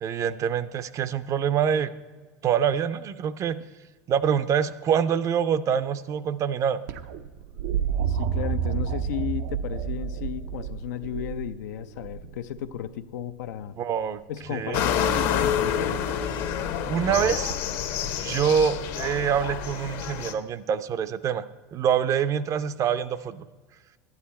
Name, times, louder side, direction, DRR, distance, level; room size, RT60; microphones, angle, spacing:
voice 1, 0.0-1.9 2.4-3.6 4.1-6.8 13.8-14.2 14.5-14.8 16.9-17.5 18.0-21.5 21.7-23.5, right 8 dB, 35° right, 15 dB, 0.5 m, -25 dB
sound 1, 6.9-12.8 14.4-14.9 17.5-17.6, right 8 dB, 80° right, 0.6 m, -30 dB
voice 2, 8.1-13.8 14.3-16.0, left 11 dB, 85° left, 11 dB, 0.5 m, -34 dB
sound 2, 14.7-20.3, left 8 dB, 60° left, 1.0 m, -28 dB
12.0 x 9.6 x 4.3 m, 1.4 s
supercardioid pair, 125°, 9 cm